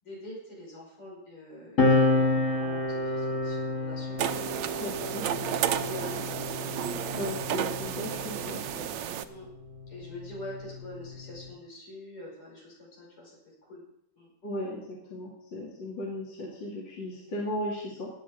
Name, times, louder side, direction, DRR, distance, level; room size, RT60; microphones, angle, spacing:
voice 1, 0.0-4.5 5.1-6.7 9.3-9.5 9.9-13.4 13.6-13.8 14.2-14.3, left 1 dB, 80° left, -3 dB, 6.5 m, -45 dB
sound 1, 1.8-8.7 9.7-11.5, left 2 dB, 35° left, 2.1 m, -30 dB
sound 2, 4.2-9.2, right 9 dB, 70° right, 1.2 m, -32 dB
voice 2, 4.8-5.2 7.1-8.9 14.4-18.1, left 1 dB, 55° left, -3 dB, 3.1 m, -36 dB
17.0 x 9.4 x 5.1 m, 0.79 s
omnidirectional pair, 2.4 m